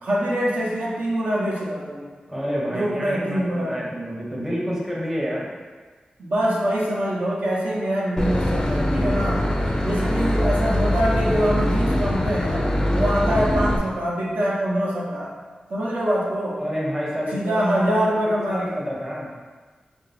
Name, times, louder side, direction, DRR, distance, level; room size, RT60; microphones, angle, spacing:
voice 1, 0.0-2.1 2.7-3.8 6.2-9.4 9.8-15.3 15.7-16.6 17.3-18.8, equal, 75° right, -5 dB, 0.8 m, -24 dB
voice 2, 2.3-5.5 9.8-10.2 16.6-17.8 18.3-19.3, equal, 15° right, -4 dB, 0.7 m, -29 dB
Boat Water vehicle / Engine, 8.2-13.8, left 1 dB, 25° left, 0.4 m, -22 dB
3.3 x 2.6 x 3.9 m, 1.4 s
wide cardioid pair, 100°, 3 cm